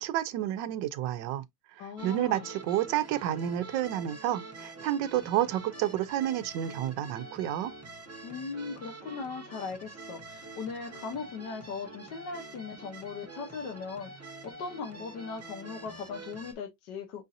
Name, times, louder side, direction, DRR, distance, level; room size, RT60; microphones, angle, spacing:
voice 1, 0.0-1.4 1.8-7.7, right 12 dB, 85° right, 1.3 m, -30 dB
voice 2, 1.8-2.4 8.2-14.1 14.4-17.2, left 5 dB, 75° left, 1.6 m, -39 dB
sound 1, 2.0-16.5, right 2 dB, 20° right, 0.4 m, -46 dB
6.1 x 2.7 x 2.5 m
omnidirectional pair, 1.9 m